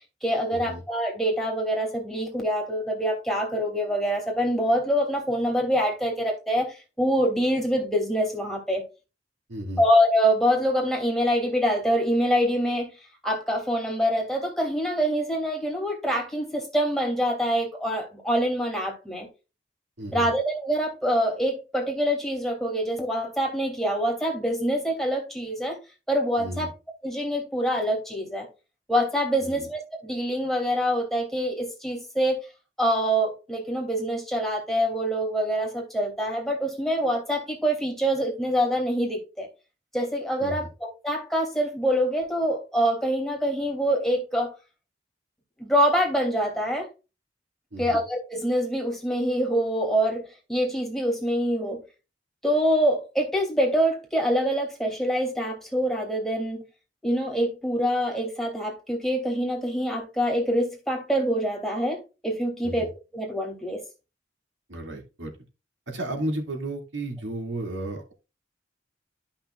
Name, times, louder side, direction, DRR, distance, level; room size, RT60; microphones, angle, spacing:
voice 1, 0.2-8.8 9.8-12.9 13.2-19.3 20.1-25.8 26.1-26.7 27.0-28.5 28.9-32.4 32.8-39.5 39.9-44.5 45.6-46.9 47.8-50.2 50.5-51.8 52.4-56.6 57.0-62.9 63.1-63.8, equal, ahead, 2.9 m, -25 dB
voice 2, 9.5-9.8 20.0-20.3 26.4-26.7 29.4-29.7 40.4-40.7 47.7-48.0 62.6-62.9 64.7-65.3 65.9-68.1, right 1 dB, 90° right, 2.6 m, -33 dB
13.5 x 5.8 x 2.5 m
head